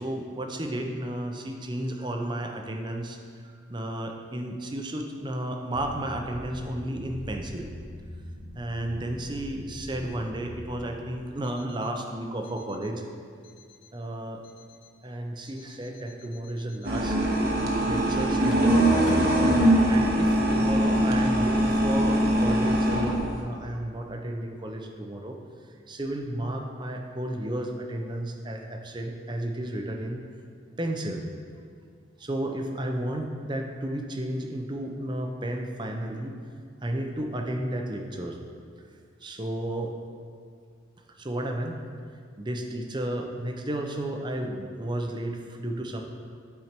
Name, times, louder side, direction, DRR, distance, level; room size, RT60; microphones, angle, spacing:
voice 1, 0.0-3.2 3.4-7.7 8.5-13.0 13.9-14.4 15.0-17.2 17.8-19.3 19.9-25.4 25.9-30.2 30.8-31.2 32.2-36.4 36.8-38.4 39.2-39.9 41.2-41.8 42.4-46.0, right 1 dB, 25° right, 3 dB, 0.6 m, -32 dB
sound 1, 5.7-11.1 11.4-11.9 12.4-12.9 13.4-13.9 14.4-14.9 15.4-19.5, left 1 dB, 80° left, 0.9 m, -44 dB
sound 2, 16.8-23.4, right 1 dB, 55° right, 1.0 m, -22 dB
12.0 x 4.5 x 4.4 m, 2.1 s
head